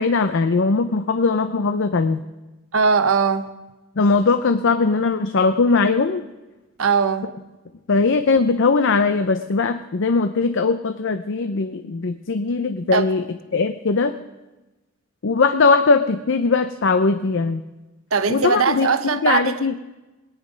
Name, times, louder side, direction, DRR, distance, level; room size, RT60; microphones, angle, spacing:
voice 1, 0.0-2.2 4.0-6.2 7.9-13.2 13.5-14.1 15.2-17.6 18.3-19.7, left 4 dB, 60° left, 9 dB, 0.6 m, -20 dB
voice 2, 2.7-3.5 6.8-7.3 12.9-13.1 18.1-19.5, right 5 dB, 75° right, 10 dB, 0.9 m, -20 dB
20.0 x 9.7 x 5.1 m, 1.1 s
head